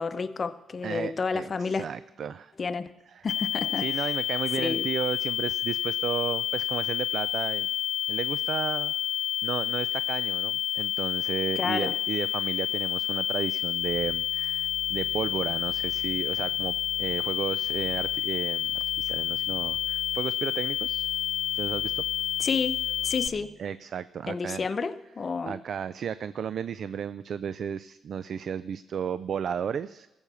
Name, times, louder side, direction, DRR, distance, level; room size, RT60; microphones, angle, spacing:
voice 1, 0.0-1.9 2.6-2.9 3.2-4.1 4.6-4.9 11.6-11.9 22.4-22.8 23.0-23.5 24.3-25.6, left 4 dB, 45° left, 12 dB, 0.7 m, -30 dB
voice 2, 0.8-2.5 3.1-3.3 3.8-7.7 8.1-8.9 9.4-21.1 21.5-22.0 23.6-24.7 25.4-30.1, right 8 dB, 65° right, 15 dB, 0.3 m, -33 dB
sound 1, 3.3-23.3, left 11 dB, 70° left, 0.3 m, -29 dB
sound 2, 13.8-23.5, right 7 dB, 90° right, 5.2 m, -48 dB
15.5 x 7.1 x 6.8 m, 1.0 s
cardioid pair, 70°, 0 cm